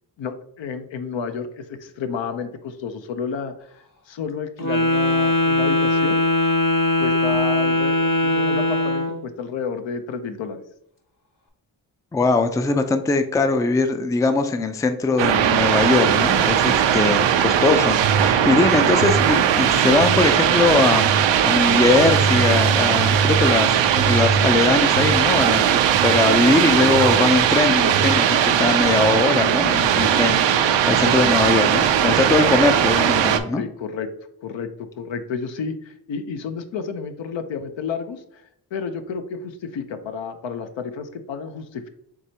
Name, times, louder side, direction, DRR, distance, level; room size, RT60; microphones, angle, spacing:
voice 1, 0.2-6.2 7.0-10.6 18.4-18.7 31.0-31.2 33.6-34.1 34.4-38.4 38.7-41.9, left 5 dB, 75° left, 8 dB, 0.6 m, -31 dB
Wind instrument woodwind instrument, 4.6-9.2, left 1 dB, 45° left, 1.3 m, -20 dB
voice 2, 12.1-21.1 21.4-33.6, left 3 dB, 10° left, 8 dB, 0.3 m, -21 dB
sound 1, 15.2-33.4, right 9 dB, 75° right, 0.5 m, -18 dB
4.7 x 3.3 x 2.8 m, 0.73 s
cardioid pair, 55°, 45 cm